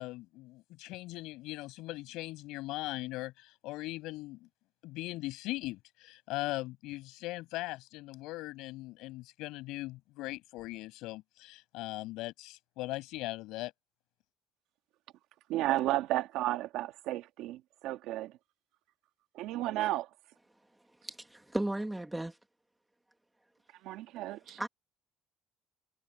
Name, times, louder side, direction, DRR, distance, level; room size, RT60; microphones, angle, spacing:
voice 1, 0.0-4.5 4.8-13.7, left 19 dB, 80° left, 6.4 m, -40 dB
voice 2, 15.5-18.3 19.3-20.1 23.8-24.6, right 15 dB, 75° right, 1.9 m, -33 dB
voice 3, 21.0-22.4 24.6-24.7, right 1 dB, 5° right, 2.1 m, -35 dB
cardioid pair, 145°, 0 cm